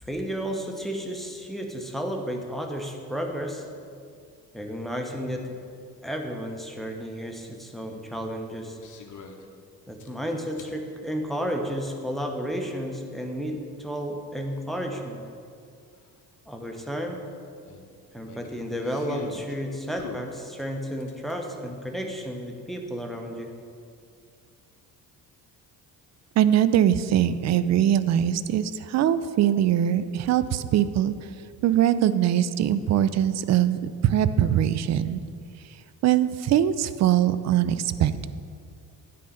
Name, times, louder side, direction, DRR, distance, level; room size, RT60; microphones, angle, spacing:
voice 1, 0.0-3.7 4.5-5.6 6.0-8.8 9.9-15.2 16.5-17.2 18.1-23.5, equal, ahead, 3 dB, 1.1 m, -32 dB
sound 1, 8.8-9.4 10.0-10.8 12.2-12.3 15.0-15.1 15.3-15.4 15.9-16.1 17.7-19.6 20.0-21.4, left 5 dB, 35° left, 1.0 m, -43 dB
voice 2, 26.4-31.1 31.6-35.2 36.0-38.3, right 11 dB, 35° right, 14 dB, 0.4 m, -22 dB
9.2 x 4.3 x 6.6 m, 2.3 s
figure-of-eight pair, 45°, 49 cm